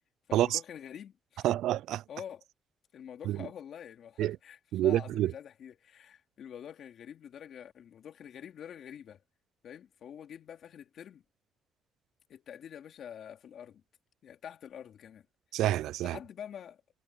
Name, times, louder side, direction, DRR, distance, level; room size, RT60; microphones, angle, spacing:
voice 1, 0.3-1.5 2.1-2.4 2.9-9.2 9.6-11.2 12.3-13.8 14.2-15.3 16.0-16.8, left 9 dB, 65° left, 2.6 m, -46 dB
voice 2, 1.4-2.0 3.3-3.4 4.2-4.4 4.7-5.3 15.5-16.2, right 13 dB, 85° right, 0.3 m, -28 dB
cardioid pair, 90°, 0 cm